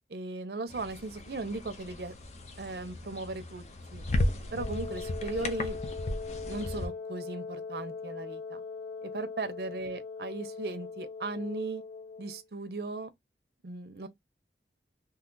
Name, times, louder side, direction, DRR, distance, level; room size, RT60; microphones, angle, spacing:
voice 1, 0.1-2.1 2.6-3.6 3.9-4.0 4.5-5.8 6.5-8.6 9.0-11.8 12.2-13.1 13.6-14.1, right 3 dB, 60° right, 0.6 m, -37 dB
sound 1, 0.7-6.9, left 1 dB, 40° left, 0.5 m, -35 dB
Wind instrument woodwind instrument, 4.6-12.4, left 4 dB, 85° left, 0.6 m, -41 dB
2.8 x 2.3 x 3.7 m
head